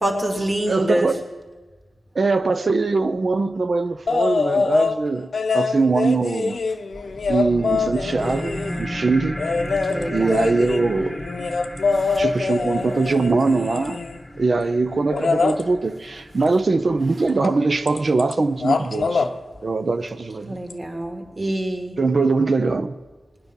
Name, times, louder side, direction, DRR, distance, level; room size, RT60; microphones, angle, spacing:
voice 1, 0.0-1.1 9.9-10.3 11.9-12.2 20.5-21.9, right 1 dB, 35° right, 2.2 m, -25 dB
voice 2, 0.7-1.3 2.1-5.3 5.5-6.6 7.3-9.4 10.1-11.2 12.2-14.0 14.4-19.3 19.6-20.6 22.0-23.0, right 3 dB, 55° right, 0.6 m, -22 dB
sound 1, 4.1-5.0 5.3-8.9 9.4-14.2 15.1-15.6 17.4-17.6 17.9-18.3 18.6-19.3 20.7-20.8, left 4 dB, 75° left, 0.7 m, -24 dB
sound 2, 6.9-17.9, equal, ahead, 1.6 m, -35 dB
20.0 x 9.7 x 5.4 m
wide cardioid pair, 65°, 0 cm